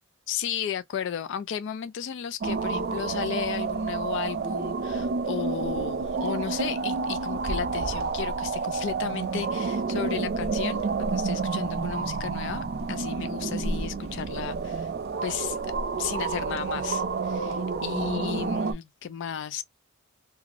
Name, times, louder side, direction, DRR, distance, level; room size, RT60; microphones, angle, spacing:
voice 1, 0.3-14.9 15.2-15.6 16.0-19.6, left 9 dB, 55° left, 0.3 m, -34 dB
sound 1, 2.4-18.7, right 4 dB, 45° right, 0.4 m, -29 dB
2.5 x 2.4 x 2.9 m
head